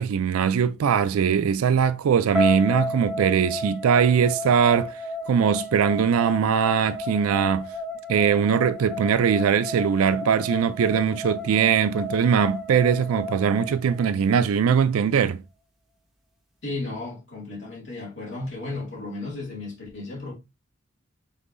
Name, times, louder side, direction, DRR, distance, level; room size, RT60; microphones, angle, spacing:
voice 1, 0.0-4.9 5.3-7.7 8.1-15.4, right 7 dB, 80° right, 0.4 m, -21 dB
sound 1, 2.3-14.5, left 1 dB, ahead, 0.9 m, -33 dB
voice 2, 16.6-20.3, left 2 dB, 55° left, 2.2 m, -34 dB
5.4 x 3.6 x 2.6 m
head